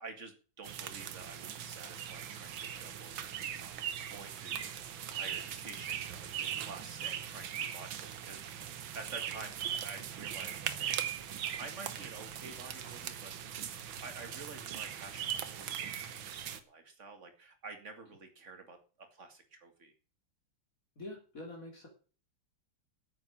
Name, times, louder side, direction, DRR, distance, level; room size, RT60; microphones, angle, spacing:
voice 1, 0.0-3.7 4.1-10.9 11.6-13.3 14.0-19.9, right 4 dB, 35° right, 6 dB, 2.3 m, -49 dB
sound 1, 0.6-16.6, right 9 dB, 65° right, 1.8 m, -40 dB
voice 2, 21.0-21.9, left 2 dB, 40° left, 1 dB, 3.4 m, -45 dB
9.3 x 8.5 x 8.4 m, 0.38 s
omnidirectional pair, 2.4 m